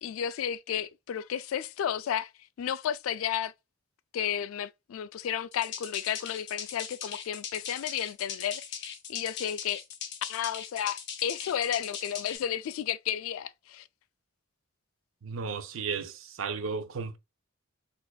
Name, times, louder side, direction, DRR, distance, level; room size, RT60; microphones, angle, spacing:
voice 1, 0.0-2.3 2.6-3.5 4.1-9.8 10.3-13.9, left 9 dB, 85° left, 0.3 m, -32 dB
sound 1, 5.5-12.4, left 8 dB, 55° left, 0.7 m, -40 dB
voice 2, 15.2-17.2, right 5 dB, 80° right, 0.5 m, -34 dB
4.2 x 2.5 x 2.2 m
head